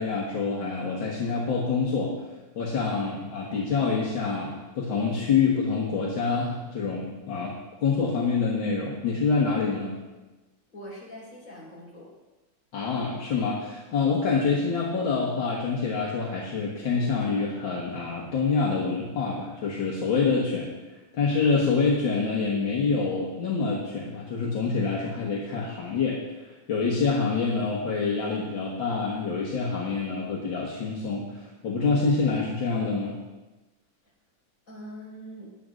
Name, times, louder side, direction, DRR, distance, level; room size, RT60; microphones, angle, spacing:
voice 1, 0.0-2.1 2.6-7.5 7.8-9.9 12.7-20.7 21.1-33.2, left 4 dB, 70° left, -4 dB, 2.2 m, -26 dB
voice 2, 10.7-12.1 14.3-14.5 34.7-35.5, equal, 40° left, -5 dB, 5.2 m, -43 dB
17.5 x 11.0 x 2.6 m, 1.1 s
omnidirectional pair, 2.2 m